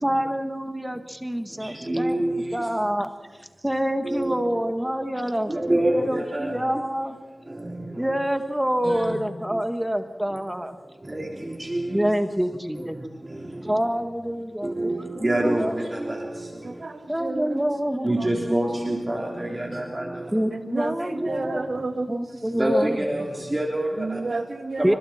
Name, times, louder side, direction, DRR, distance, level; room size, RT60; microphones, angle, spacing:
voice 1, 0.0-2.2 2.5-3.1 3.6-7.1 8.0-10.8 11.9-13.0 13.6-15.8 17.1-18.1 20.3-21.7 22.1-23.3 24.8-25.0, equal, 10° right, 7 dB, 1.7 m, -27 dB
voice 2, 1.6-2.6 4.1-4.6 5.5-6.5 7.6-7.9 8.8-9.2 11.1-12.1 14.6-16.5 18.0-20.3 21.2-21.3 22.5-24.2, right 1 dB, 30° right, -1 dB, 3.5 m, -26 dB
voice 3, 16.6-17.6 18.2-18.3 18.9-19.3 20.5-22.2 24.0-25.0, right 3 dB, 70° right, 5 dB, 2.3 m, -31 dB
29.5 x 26.0 x 4.4 m, 1.3 s
wide cardioid pair, 70°, 0 cm